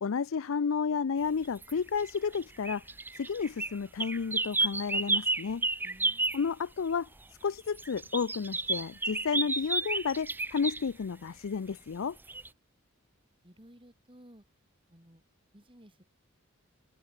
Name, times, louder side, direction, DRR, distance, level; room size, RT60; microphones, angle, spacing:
voice 1, 0.0-2.8 3.1-5.7 6.3-7.1 7.4-12.2, left 5 dB, 65° left, 0.5 m, -31 dB
sound 1, 1.4-1.7 2.0-6.4 7.8-10.8 12.3-12.5, right 3 dB, 10° right, 0.6 m, -31 dB
voice 2, 5.8-6.4 13.4-14.4 14.9-15.2 15.5-16.0, equal, 25° right, 4.9 m, -56 dB
open air
head